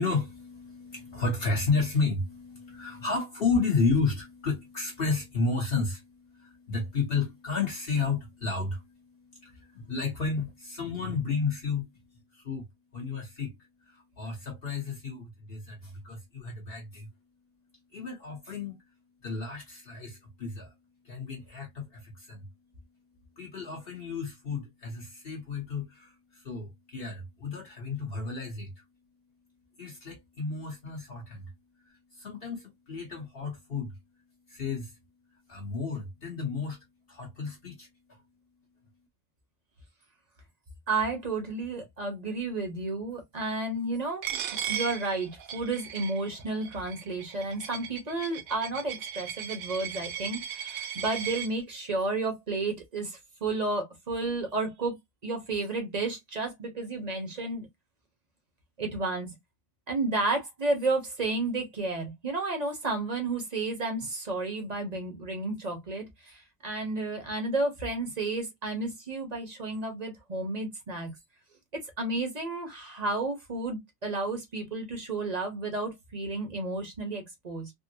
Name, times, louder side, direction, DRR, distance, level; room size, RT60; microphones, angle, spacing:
voice 1, 0.0-11.9 12.3-12.6 12.9-13.5 13.8-17.1 17.9-18.8 19.2-20.7 21.0-22.5 23.4-28.8 29.8-31.5 32.1-34.0 34.5-35.0 35.5-38.2, left 4 dB, 45° left, 1.1 m, -32 dB
voice 2, 40.9-44.4 44.7-55.0 55.2-57.7 58.8-59.3 59.9-71.1 72.0-77.7, right 2 dB, 35° right, 0.9 m, -32 dB
Coin (dropping), 44.2-51.5, right 9 dB, 85° right, 1.0 m, -37 dB
3.7 x 2.0 x 2.7 m
omnidirectional pair, 1.4 m